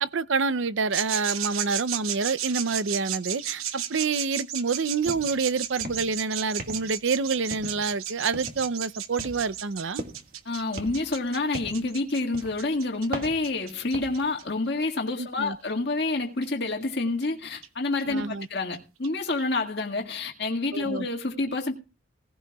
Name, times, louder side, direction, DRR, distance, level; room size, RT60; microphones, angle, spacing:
voice 1, 0.0-10.0 15.2-15.6 18.1-18.5 20.7-21.1, right 4 dB, 65° right, 0.6 m, -27 dB
sound 1, 0.9-14.4 15.7-15.8 16.4-16.5 17.2-17.3 17.6-17.7 18.0-18.1 18.4-18.5 18.7-18.8 19.0-19.1 19.4-19.5 19.8-19.9 20.2-20.3, right 11 dB, 85° right, 1.0 m, -34 dB
sound 2, 5.1-5.4 5.7-6.2 6.6-7.1 7.5-8.0 8.3-8.7 9.2-10.4 10.8-11.9 12.3-12.6 13.1-14.3, right 1 dB, 45° right, 1.9 m, -39 dB
voice 2, 10.5-21.7, left 2 dB, 50° left, 1.9 m, -28 dB
18.0 x 16.0 x 2.3 m
head